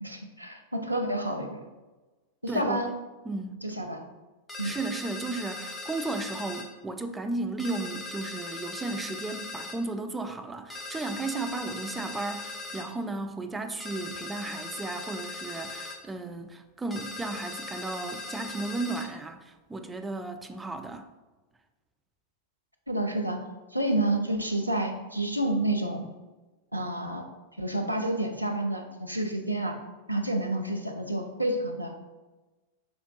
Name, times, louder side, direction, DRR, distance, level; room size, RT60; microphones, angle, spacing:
voice 1, 0.0-1.6 2.4-2.9 3.6-4.0 4.6-4.7 22.9-23.4 23.7-26.0 26.7-27.2 27.6-29.8 30.1-31.9, right 1 dB, 85° right, 4 dB, 0.5 m, -29 dB
voice 2, 2.5-2.8 3.3-3.6 4.6-21.0, right 3 dB, 10° right, 7 dB, 0.4 m, -34 dB
sound 1, 4.5-6.7 7.6-9.8 10.7-12.9 13.8-16.0 16.9-19.1, left 3 dB, 10° left, 0.7 m, -39 dB
6.1 x 3.4 x 2.3 m, 1.2 s
figure-of-eight pair, 90°, 0 cm